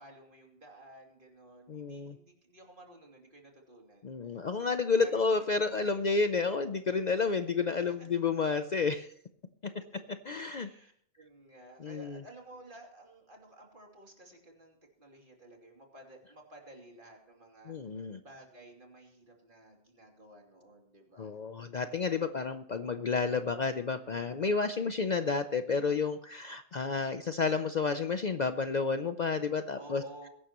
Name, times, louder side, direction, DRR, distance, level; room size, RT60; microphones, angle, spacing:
voice 1, 0.0-4.4 5.0-5.3 7.8-8.1 10.3-17.8 18.2-21.3 22.1-22.4 29.7-30.3, right 1 dB, 50° right, 0 dB, 3.1 m, -54 dB
voice 2, 1.7-2.2 4.0-9.1 9.6-9.7 10.3-10.7 11.8-12.2 17.7-18.2 21.2-30.0, left 4 dB, 45° left, 9 dB, 0.7 m, -31 dB
21.5 x 11.0 x 3.0 m, 0.63 s
omnidirectional pair, 1.2 m